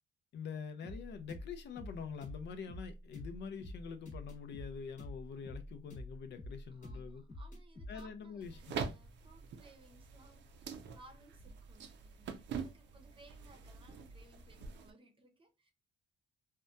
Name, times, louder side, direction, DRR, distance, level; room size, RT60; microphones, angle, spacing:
voice 1, 0.3-7.2 7.9-8.9, left 6 dB, 65° left, 0.5 m, -45 dB
sound 1, 0.8-8.1, left 1 dB, 40° left, 1.0 m, -48 dB
voice 2, 6.7-15.7, right 2 dB, 25° right, 0.7 m, -62 dB
sound 2, 8.4-14.9, right 6 dB, 65° right, 0.5 m, -45 dB
2.7 x 2.2 x 2.2 m
cardioid pair, 105°, 20 cm